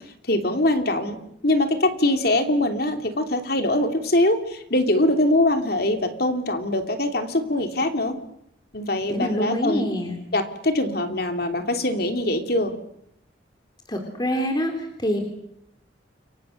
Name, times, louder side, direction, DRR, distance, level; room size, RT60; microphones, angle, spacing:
voice 1, 0.3-1.2 1.4-8.1 8.7-9.8 10.3-12.7, left 1 dB, 55° left, 6 dB, 3.0 m, -23 dB
voice 2, 9.1-10.2 13.9-15.2, equal, 25° left, 4 dB, 3.1 m, -25 dB
29.0 x 24.0 x 6.6 m, 0.74 s
head